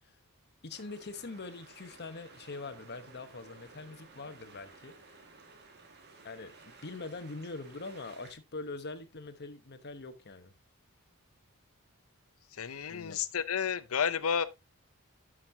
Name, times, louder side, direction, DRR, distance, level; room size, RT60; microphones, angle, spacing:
voice 1, 0.6-4.9 6.2-10.5 12.9-13.2, left 3 dB, 50° left, 1.1 m, -43 dB
sound 1, 0.7-8.3, right 4 dB, 50° right, 1.9 m, -55 dB
voice 2, 12.6-14.5, left 7 dB, 70° left, 0.6 m, -31 dB
12.0 x 6.4 x 2.8 m
head